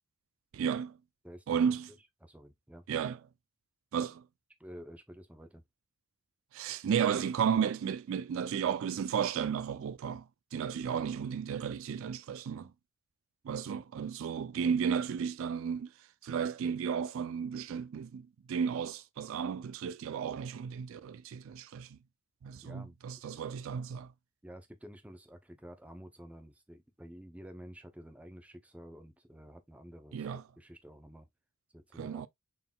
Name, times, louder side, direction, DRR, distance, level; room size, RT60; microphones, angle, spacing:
voice 1, 0.5-1.0 1.5-1.9 2.9-3.2 3.9-4.2 6.5-12.7 13.4-15.9 16.2-22.0 22.4-24.1 30.1-30.4 32.0-32.3, right 7 dB, 60° right, 0.3 m, -33 dB
voice 2, 1.2-1.6 2.2-2.9 4.6-5.6 22.6-23.0 24.4-31.3 31.7-32.3, equal, 5° right, 0.6 m, -50 dB
3.9 x 3.7 x 2.2 m
head